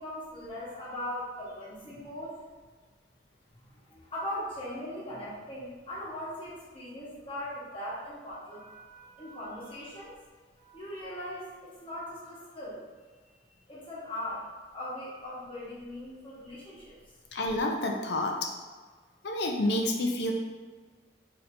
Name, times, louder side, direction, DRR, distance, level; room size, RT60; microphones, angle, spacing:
voice 1, 0.0-2.4 3.6-10.1 10.5-12.8 13.7-14.5 14.7-16.9, left 1 dB, 30° left, -8 dB, 1.1 m, -40 dB
voice 2, 17.3-18.5 19.2-20.3, left 1 dB, 65° left, 2 dB, 0.5 m, -29 dB
4.2 x 2.8 x 2.6 m, 1.4 s
head